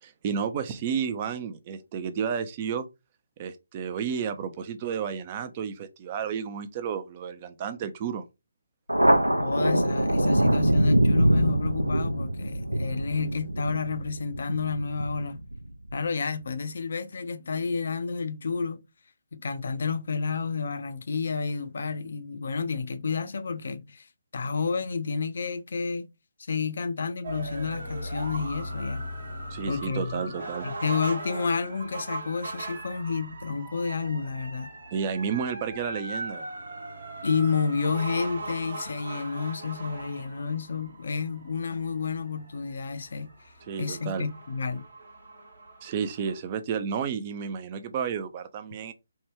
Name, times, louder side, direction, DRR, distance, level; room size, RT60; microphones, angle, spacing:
voice 1, 0.0-2.9 3.4-8.2 29.5-30.7 34.9-36.5 43.7-44.3 45.8-48.9, right 7 dB, 25° right, 0.4 m, -31 dB
Thunder, 8.9-15.9, right 1 dB, 90° right, 0.5 m, -24 dB
voice 2, 9.4-15.4 15.9-18.9 19.3-24.1 24.3-26.1 26.5-29.0 29.7-30.2 30.6-34.7 37.2-43.3 43.8-44.8, left 5 dB, 50° left, 0.4 m, -30 dB
sound 1, 27.2-46.4, right 1 dB, 55° right, 0.9 m, -39 dB
3.2 x 2.2 x 3.1 m
figure-of-eight pair, 145°, 0 cm